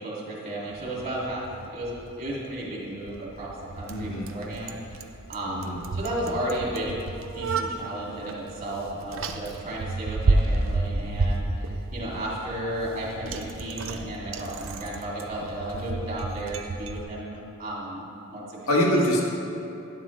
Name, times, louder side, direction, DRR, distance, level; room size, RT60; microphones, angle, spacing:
voice 1, 0.0-4.8 5.3-5.6 5.9-18.6 18.9-19.0, right 1 dB, 45° right, -5 dB, 2.4 m, -33 dB
Bicycle, 0.7-17.0, right 2 dB, 70° right, 0.5 m, -31 dB
voice 2, 3.9-4.3 5.5-5.8 18.7-19.2, equal, 85° left, -1 dB, 1.5 m, -24 dB
11.5 x 10.5 x 3.2 m, 2.9 s
head